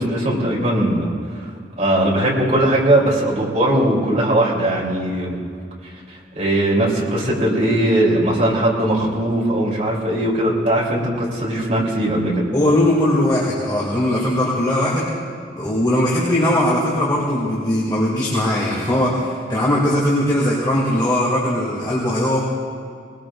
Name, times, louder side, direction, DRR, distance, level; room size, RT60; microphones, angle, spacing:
voice 1, 0.0-1.5 1.8-5.4 6.1-12.5, right 1 dB, 45° right, -3 dB, 3.3 m, -19 dB
voice 2, 12.5-15.1 15.5-22.4, left 1 dB, 25° left, -6 dB, 2.6 m, -19 dB
21.0 x 20.5 x 2.5 m, 2.2 s
head